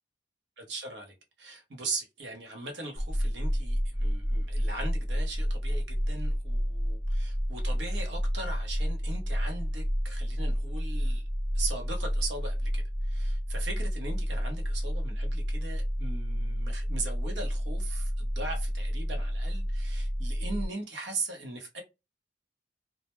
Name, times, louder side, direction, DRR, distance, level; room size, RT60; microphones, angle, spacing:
voice 1, 0.6-11.3 11.5-21.8, right 3 dB, 85° right, 0.7 m, -39 dB
sound 1, 3.0-20.7, equal, ahead, 0.5 m, -30 dB
2.1 x 2.1 x 2.9 m
head